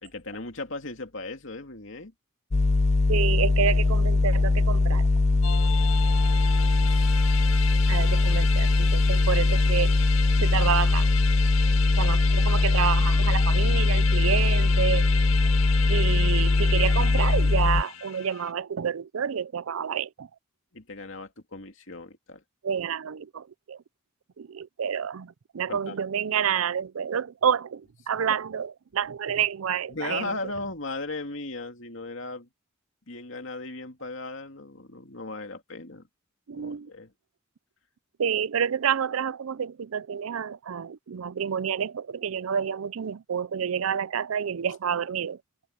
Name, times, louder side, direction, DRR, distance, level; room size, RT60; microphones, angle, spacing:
voice 1, 0.0-2.1 6.9-7.2 20.7-22.4 25.7-26.0 28.3-28.4 29.9-32.5 33.1-36.1 36.5-37.1, left 2 dB, 65° left, 2.7 m, -37 dB
sound 1, 2.5-17.8, left 3 dB, 30° left, 0.5 m, -21 dB
voice 2, 3.1-5.1 7.9-10.0 10.4-11.1 12.0-15.1 15.4-15.5 15.9-20.3 22.6-23.8 24.4-30.3 36.5-36.9 38.2-45.4, right 7 dB, 85° right, 0.5 m, -29 dB
sound 2, 5.4-18.5, left 9 dB, 80° left, 1.8 m, -34 dB
open air
head